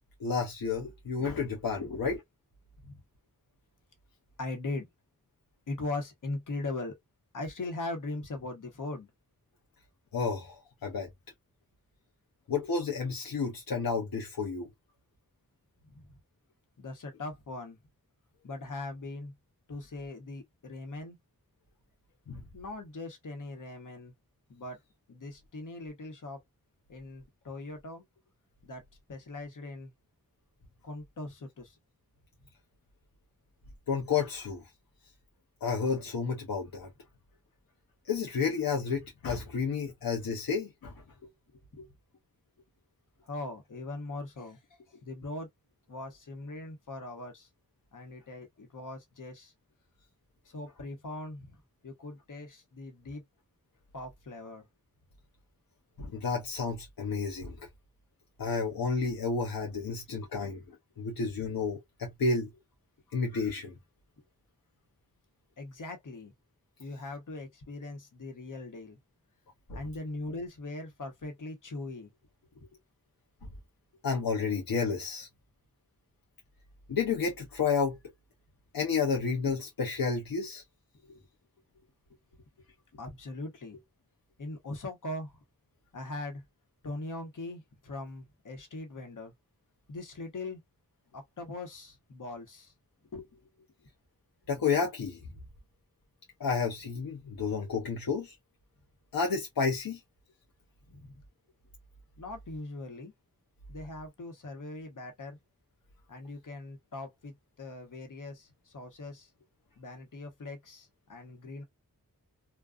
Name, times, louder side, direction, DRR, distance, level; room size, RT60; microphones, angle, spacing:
voice 1, 0.2-2.2 10.1-11.1 12.5-14.7 22.3-22.4 33.9-34.6 35.6-36.9 38.1-40.9 56.0-57.6 58.4-60.6 61.0-62.5 63.1-63.7 69.7-69.8 74.0-75.3 76.9-78.0 78.7-80.6 94.5-95.2 96.4-98.3 99.1-100.0, left 5 dB, 85° left, 0.7 m, -31 dB
voice 2, 4.4-4.9 5.7-6.9 7.3-9.1 15.8-16.1 16.8-17.8 18.4-19.3 19.7-21.2 22.5-24.1 24.5-24.8 25.1-26.4 26.9-28.0 28.6-28.8 29.1-29.9 30.8-31.8 41.2-41.9 43.2-44.6 44.9-45.5 45.9-47.5 47.9-49.5 50.4-53.2 53.9-54.7 59.9-60.0 60.2-60.6 65.6-66.3 66.8-69.0 69.7-72.1 72.5-72.7 81.0-81.2 81.8-81.9 82.9-83.8 84.4-85.3 85.9-86.4 86.8-89.3 89.9-90.6 91.1-92.7 93.1-93.7 100.9-101.2 102.2-103.1 103.7-105.4 106.1-109.3 109.8-111.6, left 2 dB, 60° left, 1.0 m, -40 dB
2.4 x 2.3 x 2.3 m
cardioid pair, 40°, 35 cm